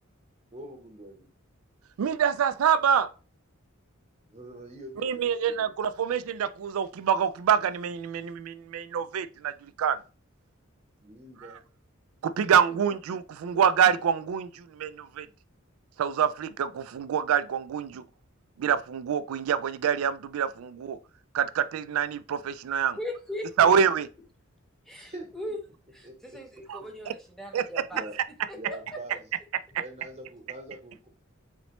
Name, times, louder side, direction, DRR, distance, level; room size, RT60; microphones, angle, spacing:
voice 1, 0.5-1.3 4.3-5.7 11.0-11.6 12.4-13.0 25.0-25.5 26.0-26.2 27.9-28.2 28.5-29.2 29.8-31.1, right 1 dB, 30° right, 1.0 m, -44 dB
voice 2, 2.0-3.1 5.0-10.0 12.2-15.3 16.0-18.0 18.6-21.0 21.3-23.0 23.6-24.1 26.7-26.8 27.5-27.6, right 8 dB, 80° right, 0.3 m, -26 dB
voice 3, 23.0-23.7 24.9-25.6 25.9-28.1 28.5-29.0, left 1 dB, ahead, 0.8 m, -39 dB
4.0 x 3.0 x 3.0 m
head